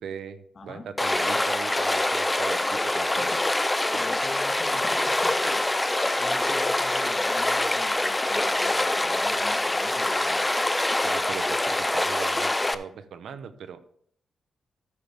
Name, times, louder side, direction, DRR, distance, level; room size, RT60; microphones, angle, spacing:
voice 1, 0.0-3.3 3.9-4.0 11.0-13.9, right 7 dB, 75° right, 11 dB, 0.8 m, -39 dB
voice 2, 0.5-0.9 3.2-3.4 3.9-5.6 6.0-10.4, left 4 dB, 45° left, 5 dB, 1.6 m, -44 dB
Stream, 1.0-12.7, left 2 dB, 15° left, 0.6 m, -25 dB
13.5 x 6.9 x 3.5 m, 0.64 s
cardioid pair, 90°, 0 cm